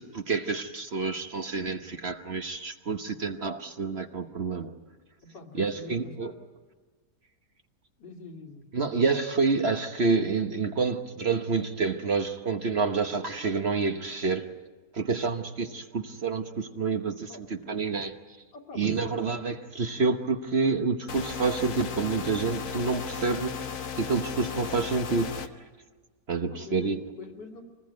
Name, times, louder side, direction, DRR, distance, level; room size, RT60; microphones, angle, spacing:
voice 1, 0.0-4.7 5.6-6.3 8.7-14.5 14.9-18.1 18.7-23.5 24.0-25.3 26.3-27.0, right 4 dB, 45° right, 6 dB, 1.1 m, -28 dB
voice 2, 5.3-6.4 8.0-8.7 17.3-17.4 18.5-19.2 26.5-27.6, left 3 dB, 85° left, 2 dB, 3.1 m, -44 dB
sound 1, 21.1-25.5, left 7 dB, 55° left, 1.4 m, -35 dB
25.5 x 20.0 x 9.4 m, 1.4 s
omnidirectional pair, 1.8 m